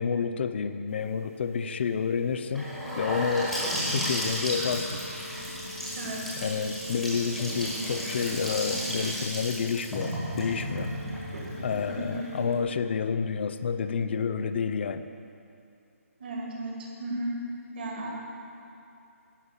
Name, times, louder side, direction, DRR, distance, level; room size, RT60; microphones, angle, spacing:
voice 1, 0.0-2.7 3.0-3.6 3.9-5.0 6.4-10.9 11.6-15.0, left 6 dB, 45° left, 11 dB, 0.5 m, -29 dB
sound 1, 0.9-12.6, left 2 dB, 65° right, 1.9 m, -45 dB
Gurgling / Sink (filling or washing) / Bathtub (filling or washing), 2.6-12.4, equal, ahead, 1.5 m, -33 dB
voice 2, 5.9-6.3 11.9-12.3 16.2-17.3 17.7-18.1, right 1 dB, 45° right, -2 dB, 2.5 m, -34 dB
11.5 x 5.5 x 8.1 m, 2.6 s
hypercardioid pair, 160°, 8 cm